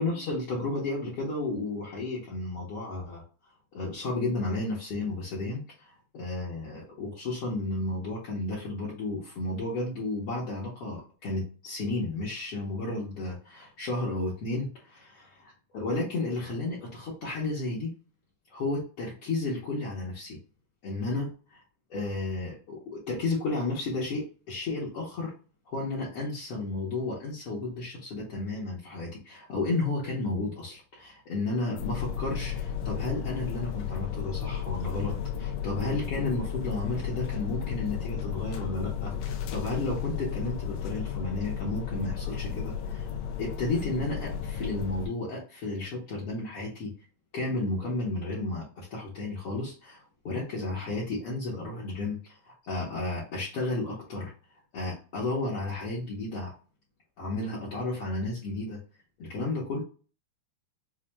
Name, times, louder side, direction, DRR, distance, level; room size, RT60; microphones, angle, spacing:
voice 1, 0.0-3.2 3.7-17.9 18.5-20.4 20.8-21.6 21.9-25.3 25.7-43.1 43.4-46.9 47.3-54.3 54.7-56.5 57.2-58.8 59.2-59.8, left 2 dB, 60° left, -6 dB, 1.7 m, -33 dB
sound 1, 31.7-45.1, left 8 dB, 90° left, 1.5 m, -33 dB
6.1 x 2.5 x 2.2 m, 0.37 s
omnidirectional pair, 3.6 m